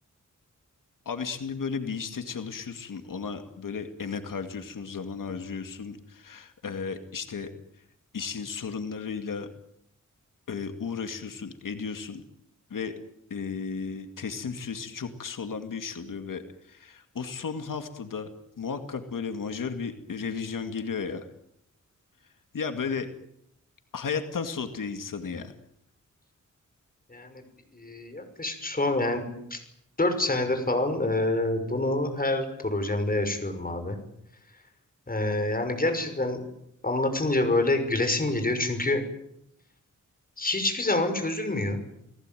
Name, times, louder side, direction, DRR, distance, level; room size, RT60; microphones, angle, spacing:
voice 1, 1.1-7.5 8.1-9.5 10.5-12.2 12.7-12.9 13.3-16.4 16.7-18.3 18.6-21.3 22.5-23.1 23.9-25.5, left 5 dB, 90° left, 7 dB, 2.2 m, -34 dB
voice 2, 27.1-27.4 27.7-29.6 30.0-34.0 35.1-36.4 36.8-39.0 40.4-41.8, left 2 dB, 30° left, 7 dB, 5.9 m, -27 dB
30.0 x 19.0 x 9.2 m, 0.77 s
wide cardioid pair, 105°, 31 cm